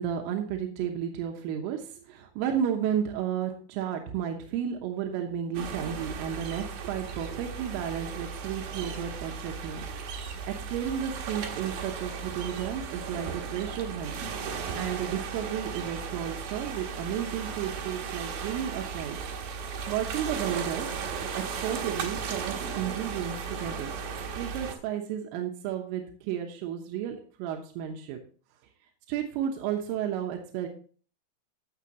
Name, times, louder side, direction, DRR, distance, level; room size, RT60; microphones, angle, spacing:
voice 1, 0.0-9.9 10.2-14.1 14.8-19.2 19.9-20.9 21.3-23.9 24.4-28.2 29.1-30.7, right 9 dB, 90° right, 3 dB, 3.7 m, -33 dB
sound 1, 5.5-24.7, right 6 dB, 65° right, 2.5 m, -36 dB
14.5 x 6.8 x 2.9 m, 0.41 s
omnidirectional pair, 5.7 m